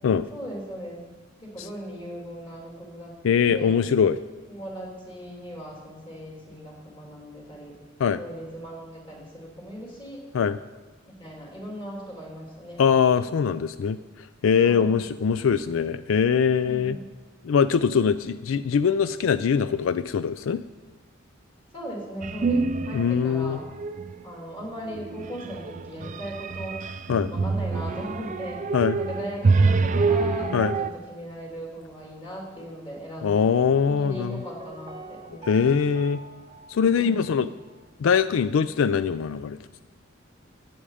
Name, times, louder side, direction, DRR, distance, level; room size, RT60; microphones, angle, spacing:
voice 1, 0.3-1.0 1.4-3.8 4.5-7.7 8.2-10.2 11.1-12.8 14.6-14.9 16.6-17.0 21.7-23.6 24.2-26.8 27.3-35.7 36.9-37.3, equal, 25° left, -2 dB, 3.1 m, -38 dB
voice 2, 3.2-4.2 8.0-8.2 10.3-10.6 12.8-17.0 17.4-20.6 22.9-23.6 27.1-27.3 28.7-29.0 30.5-30.7 33.2-34.4 35.4-36.2 36.7-37.5 38.0-39.6, left 6 dB, 90° left, 14 dB, 0.4 m, -22 dB
sound 1, 22.2-23.2 23.6-24.2 24.9-30.9, right 4 dB, 40° right, 0.4 m, -26 dB
Piano, 34.1-37.9 38.1-38.2, right 1 dB, 25° right, 0.9 m, -44 dB
14.5 x 8.7 x 5.0 m, 1.3 s
head